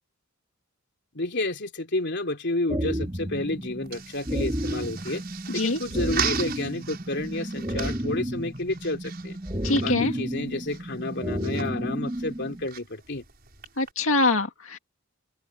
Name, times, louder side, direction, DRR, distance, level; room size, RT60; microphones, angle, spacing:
voice 1, 1.1-5.2 5.5-9.4 9.8-13.2, left 2 dB, 60° left, 3.3 m, -30 dB
sound 1, 2.7-12.7, equal, 25° right, 3.3 m, -32 dB
sound 2, 3.0-13.9, right 9 dB, 50° right, 6.4 m, -39 dB
voice 2, 5.5-5.8 9.6-10.1 13.8-14.8, left 2 dB, 80° left, 2.0 m, -24 dB
open air
head